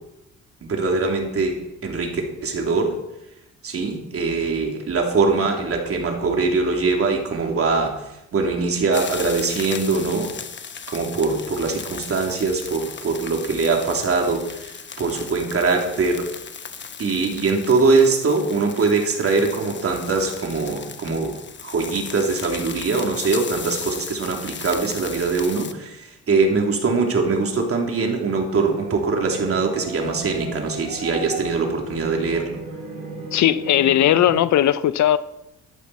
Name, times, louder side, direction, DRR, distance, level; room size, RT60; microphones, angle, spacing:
voice 1, 0.6-3.0 3.6-8.0 8.3-10.3 10.9-16.3 17.0-21.4 21.6-32.6, right 4 dB, 50° right, 2 dB, 3.1 m, -22 dB
sound 1, 8.9-25.7, left 6 dB, 40° left, 1.0 m, -37 dB
sound 2, 28.5-34.4, right 4 dB, 85° right, 4.8 m, -35 dB
voice 2, 33.3-35.2, left 11 dB, 70° left, 15 dB, 0.7 m, -17 dB
14.0 x 11.0 x 4.2 m, 0.89 s
cardioid pair, 90°, 30 cm